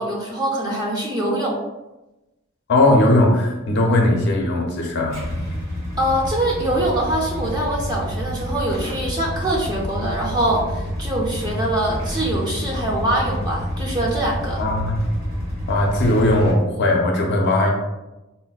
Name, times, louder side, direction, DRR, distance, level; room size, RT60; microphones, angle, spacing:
voice 1, 0.0-1.6 6.0-14.6, right 1 dB, 20° right, -3 dB, 0.5 m, -23 dB
voice 2, 2.7-5.2 14.6-15.0 15.7-17.7, left 1 dB, 55° left, 1 dB, 0.5 m, -18 dB
Motorcycle / Engine starting / Idling, 5.1-16.5, equal, 80° right, 1.4 m, -28 dB
4.0 x 2.0 x 2.3 m, 1.0 s
head